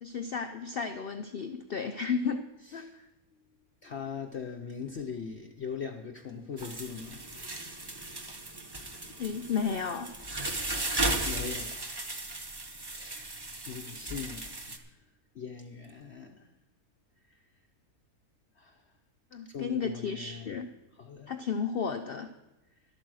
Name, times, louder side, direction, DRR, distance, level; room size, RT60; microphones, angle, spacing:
voice 1, 0.0-2.4 2.7-3.0 9.2-10.1 19.3-20.7 21.3-22.3, left 6 dB, 70° left, 8 dB, 0.5 m, -33 dB
voice 2, 3.8-7.3 10.7-12.1 12.8-13.3 13.7-15.0 15.3-16.5 17.3-17.4 18.6-18.8 19.5-20.6 21.0-21.3, left 6 dB, 55° left, 3 dB, 0.8 m, -41 dB
sound 1, 6.6-14.8, right 2 dB, 25° right, 0.5 m, -36 dB
12.0 x 8.6 x 6.2 m, 0.98 s
omnidirectional pair, 1.7 m